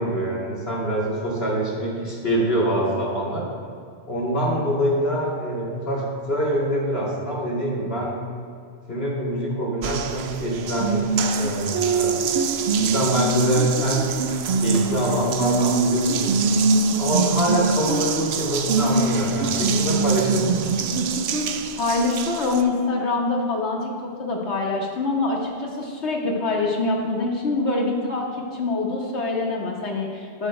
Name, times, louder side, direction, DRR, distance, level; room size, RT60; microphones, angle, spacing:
voice 1, 0.0-3.4 4.1-8.2 8.9-11.0 11.3-12.2 12.8-14.1 14.5-16.3 17.0-20.7, right 1 dB, 65° left, -4 dB, 2.9 m, -24 dB
Water tap faucet, 9.8-22.6, right 4 dB, 70° right, 0.9 m, -23 dB
voice 2, 21.8-30.5, left 3 dB, 90° left, -1 dB, 1.8 m, -25 dB
12.5 x 11.5 x 2.2 m, 2.3 s
omnidirectional pair, 1.1 m